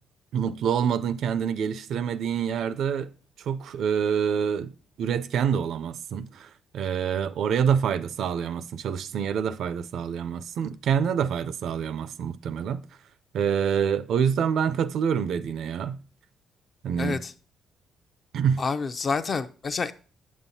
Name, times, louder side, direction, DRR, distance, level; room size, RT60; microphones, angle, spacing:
voice 1, 0.3-3.1 3.5-4.7 5.0-12.8 13.3-16.0 16.8-17.2 18.3-18.6, right 7 dB, 70° right, 0.4 m, -26 dB
voice 2, 17.0-17.3 18.6-19.9, left 5 dB, 45° left, 0.5 m, -28 dB
7.7 x 7.2 x 2.7 m
cardioid pair, 90°, 0 cm